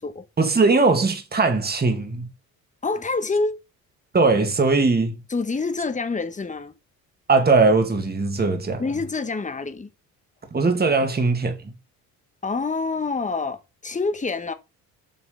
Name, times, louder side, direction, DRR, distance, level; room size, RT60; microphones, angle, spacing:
voice 1, 0.4-2.3 4.1-5.2 7.3-8.8 10.5-11.5, right 3 dB, 25° right, 2.2 m, -20 dB
voice 2, 2.8-3.6 5.3-6.7 8.8-9.9 12.4-14.5, left 3 dB, 20° left, 1.3 m, -26 dB
8.5 x 5.8 x 3.9 m
cardioid pair, 85°, 36 cm